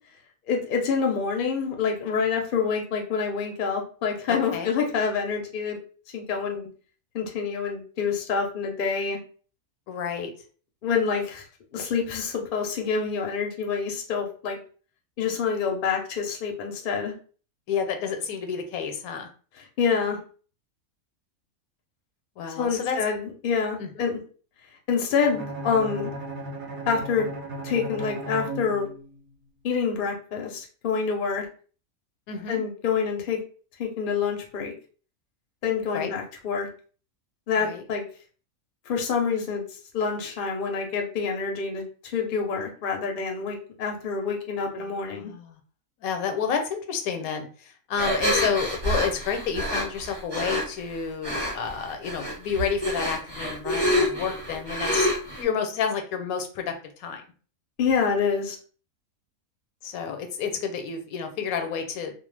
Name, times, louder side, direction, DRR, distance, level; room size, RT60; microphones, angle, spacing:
voice 1, 0.5-5.8 6.1-6.7 7.1-9.2 10.8-11.4 11.7-14.6 15.2-17.1 19.8-20.2 22.6-24.2 24.9-26.1 26.8-27.3 27.6-28.9 29.6-31.5 32.5-33.4 33.8-34.7 35.6-36.7 37.5-38.0 38.9-39.6 39.9-45.3 57.8-58.6, left 5 dB, 55° left, 1 dB, 0.6 m, -27 dB
voice 2, 4.3-4.7 9.9-10.3 17.7-19.3 22.4-23.0 23.8-24.1 32.3-32.6 35.9-36.1 37.6-37.8 44.8-45.6 46.0-55.1 55.4-57.2 59.8-62.1, left 6 dB, 80° left, 6 dB, 1.0 m, -30 dB
Bowed string instrument, 25.2-29.3, right 2 dB, 70° right, 0.9 m, -36 dB
sound 1, 48.0-50.6 51.2-51.7 52.0-55.4, equal, 20° right, 0.8 m, -27 dB
2.4 x 2.1 x 3.2 m, 0.40 s
omnidirectional pair, 1.5 m